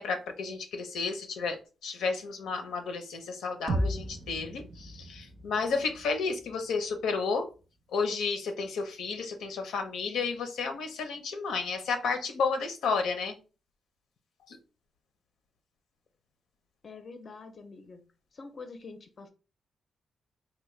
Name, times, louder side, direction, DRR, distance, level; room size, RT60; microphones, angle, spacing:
voice 1, 0.0-7.5 7.9-13.4 14.5-14.6, left 4 dB, 90° left, 5 dB, 0.6 m, -32 dB
sound 1, 3.7-7.6, right 1 dB, 35° right, 0.4 m, -36 dB
voice 2, 16.8-18.0 18.3-19.3, left 4 dB, 40° left, 8 dB, 0.5 m, -46 dB
3.4 x 2.1 x 3.1 m, 0.34 s
cardioid pair, 105°, 0 cm